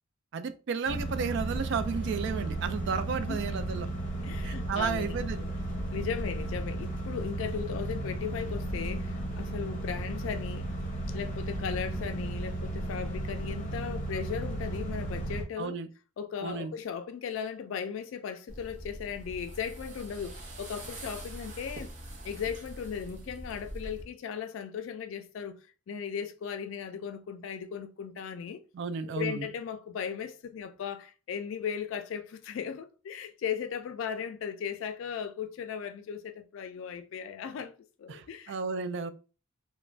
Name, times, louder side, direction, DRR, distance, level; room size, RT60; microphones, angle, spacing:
voice 1, 0.3-3.9 4.4-5.4 15.6-15.9 16.4-16.7 28.7-29.5 38.1-39.1, right 5 dB, 60° right, 0.3 m, -33 dB
sound 1, 0.9-15.4, right 1 dB, 40° left, 0.7 m, -34 dB
voice 2, 4.2-5.5 5.9-10.7 11.1-15.8 16.2-21.9 22.2-25.6 25.9-28.6 29.1-37.7 38.0-38.6, left 7 dB, 70° left, 0.3 m, -37 dB
sound 2, 18.5-24.0, right 1 dB, 40° right, 0.7 m, -43 dB
2.4 x 2.1 x 3.2 m
head